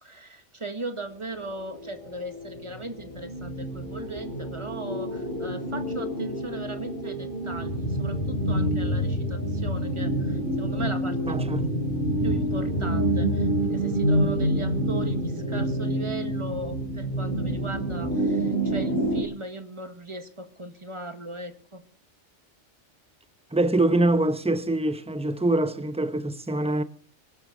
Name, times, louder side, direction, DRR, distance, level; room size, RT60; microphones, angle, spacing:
voice 1, 0.0-11.4 12.0-21.8, right 2 dB, 25° right, 1.7 m, -38 dB
sound 1, 1.3-19.2, right 1 dB, 45° left, 3.5 m, -27 dB
voice 2, 11.3-11.6 23.5-26.8, right 2 dB, 5° right, 0.7 m, -24 dB
25.0 x 12.0 x 4.0 m
omnidirectional pair, 1.2 m